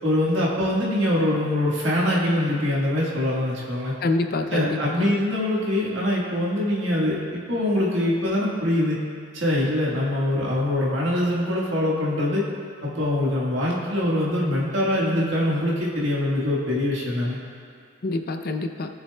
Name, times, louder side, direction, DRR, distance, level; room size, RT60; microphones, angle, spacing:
voice 1, 0.0-3.9 4.5-9.0 9.3-12.4 12.8-17.4, left 1 dB, 70° right, -5 dB, 1.6 m, -23 dB
voice 2, 4.0-5.2 18.0-18.9, left 2 dB, 50° left, 7 dB, 0.6 m, -26 dB
18.0 x 7.0 x 2.3 m, 2.2 s
head